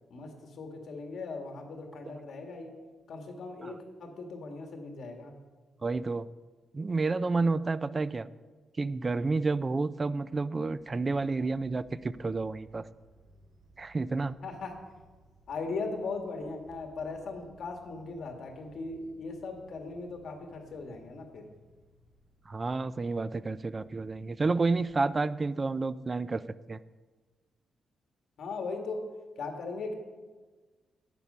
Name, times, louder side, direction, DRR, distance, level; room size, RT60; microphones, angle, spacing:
voice 1, 0.1-2.7 3.1-5.3 14.4-14.8 15.5-21.4 28.4-29.0 29.4-29.9, left 3 dB, 65° left, 4 dB, 1.8 m, -38 dB
voice 2, 5.8-6.3 6.7-8.3 8.8-12.9 13.8-14.4 22.5-26.4 26.7-26.8, right 3 dB, 25° right, 16 dB, 0.3 m, -30 dB
sound 1, 10.6-25.1, right 1 dB, 70° right, 3.6 m, -62 dB
10.5 x 8.5 x 5.5 m, 1.3 s
cardioid pair, 130°, 0 cm